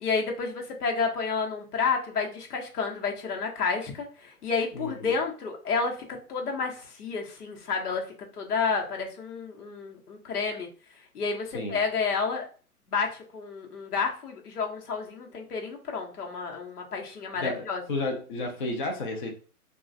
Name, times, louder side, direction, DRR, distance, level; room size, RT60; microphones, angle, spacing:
voice 1, 0.0-6.0 6.3-8.1 8.4-10.7 11.1-12.5 12.9-17.8, left 5 dB, 80° left, 2 dB, 1.0 m, -30 dB
voice 2, 4.7-5.1 11.5-11.8 17.4-19.3, left 2 dB, 35° left, 2 dB, 0.4 m, -32 dB
3.0 x 2.3 x 2.5 m, 0.38 s
hypercardioid pair, 140°, 45 cm